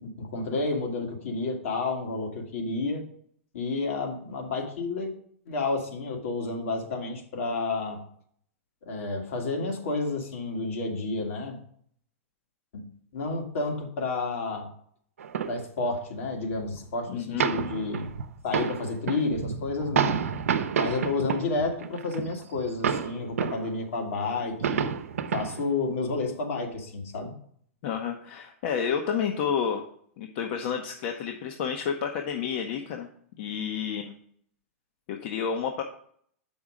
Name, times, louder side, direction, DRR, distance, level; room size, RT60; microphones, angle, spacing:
voice 1, 0.0-3.0 3.5-5.1 5.5-8.0 8.9-11.6 12.7-12.8 13.1-14.7 15.5-18.1 18.4-20.2 20.8-24.9 25.3-27.3, left 3 dB, 70° left, 2 dB, 2.0 m, -30 dB
sound 1, 15.2-15.6 16.2-16.3 16.5-16.9 17.4-23.7 24.1-24.2 24.4-25.7 26.3-26.4, right 7 dB, 85° right, 0.7 m, -29 dB
voice 2, 17.1-17.5 27.8-29.9 30.2-33.1 33.4-34.1 35.1-35.8, left 7 dB, 55° left, 4 dB, 0.9 m, -30 dB
7.1 x 5.5 x 5.0 m, 0.62 s
hypercardioid pair, 130°, 7 cm